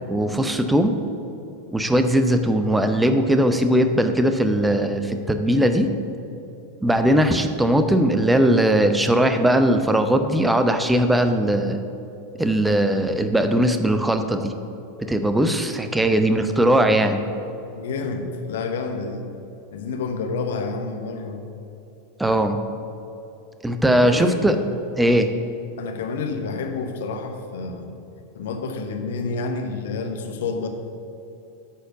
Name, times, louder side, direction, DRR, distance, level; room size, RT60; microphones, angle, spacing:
voice 1, 0.1-0.9 1.7-5.9 6.8-11.8 12.4-14.5 15.0-17.2 22.2-22.6 23.6-24.6 25.0-25.3, right 1 dB, 5° right, 7 dB, 0.6 m, -19 dB
voice 2, 17.7-19.3 19.7-21.4 24.0-24.6 25.8-27.9 28.3-30.7, left 4 dB, 60° left, 5 dB, 0.8 m, -29 dB
9.2 x 4.4 x 6.5 m, 2.9 s
figure-of-eight pair, 85°, 0 cm